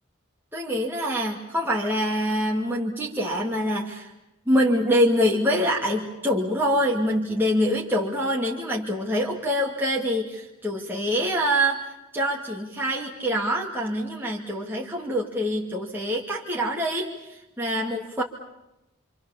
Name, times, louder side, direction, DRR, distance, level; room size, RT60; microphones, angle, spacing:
voice 1, 0.5-4.1 4.5-18.2, equal, 10° right, -3 dB, 2.3 m, -25 dB
27.5 x 26.5 x 7.3 m, 0.93 s
head